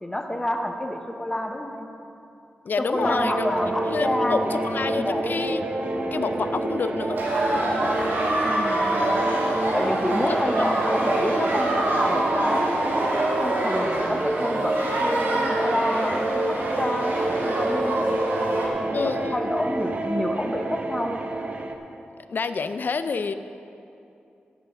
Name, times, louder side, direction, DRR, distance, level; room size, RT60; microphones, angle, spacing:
voice 1, 0.0-1.9 2.8-4.7 4.9-5.4 8.4-9.3 9.7-21.2, left 1 dB, 15° left, 4 dB, 0.9 m, -29 dB
voice 2, 2.6-3.4 3.9-5.6 6.1-7.2 10.3-10.7 11.3-11.5 18.9-19.5 22.3-23.3, left 4 dB, 55° left, 11 dB, 0.4 m, -28 dB
sound 1, 2.9-21.7, right 2 dB, 40° right, 0.8 m, -28 dB
sound 2, 7.2-18.7, right 1 dB, 85° right, 2.0 m, -26 dB
8.8 x 8.0 x 6.7 m, 2.7 s
wide cardioid pair, 100°, 4 cm